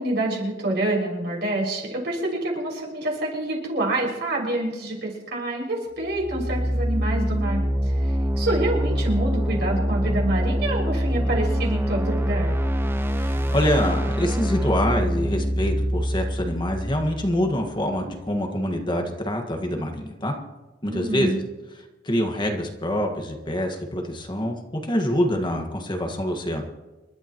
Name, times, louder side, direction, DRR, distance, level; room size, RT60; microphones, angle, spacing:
voice 1, 0.0-12.6 20.8-21.3, right 1 dB, 60° right, -3 dB, 6.2 m, -27 dB
sound 1, 6.0-17.8, equal, 10° right, 0.6 m, -25 dB
voice 2, 13.2-20.3 20.8-21.4 22.0-26.7, equal, 25° left, 3 dB, 1.7 m, -25 dB
29.0 x 12.5 x 3.1 m, 1.1 s
head